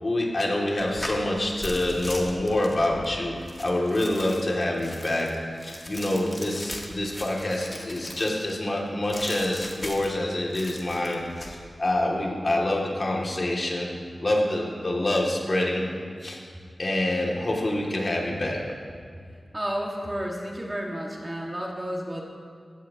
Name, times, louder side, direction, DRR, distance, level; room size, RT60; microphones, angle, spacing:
voice 1, 0.0-3.3 3.6-5.3 5.6-13.9 14.2-15.9 16.2-16.4 16.8-18.6, left 1 dB, 45° left, -2 dB, 2.5 m, -26 dB
sound 1, 0.8-8.6 9.1-10.2 10.5-11.5, left 1 dB, 25° left, 1.8 m, -39 dB
voice 2, 19.5-22.2, equal, 20° right, -2 dB, 1.9 m, -31 dB
16.5 x 14.5 x 3.0 m, 2.2 s
wide cardioid pair, 100°, 0 cm